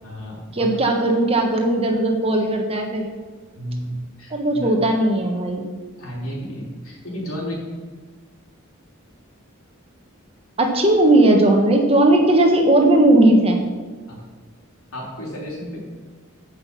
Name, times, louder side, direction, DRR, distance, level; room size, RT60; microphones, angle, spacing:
voice 1, 0.0-0.7 3.5-4.7 6.0-7.6 14.1-14.2 14.9-15.8, equal, 90° left, -3 dB, 3.7 m, -32 dB
voice 2, 0.5-3.1 4.3-5.7 10.6-13.6, right 1 dB, 25° right, 3 dB, 1.4 m, -17 dB
14.5 x 6.0 x 5.5 m, 1.4 s
head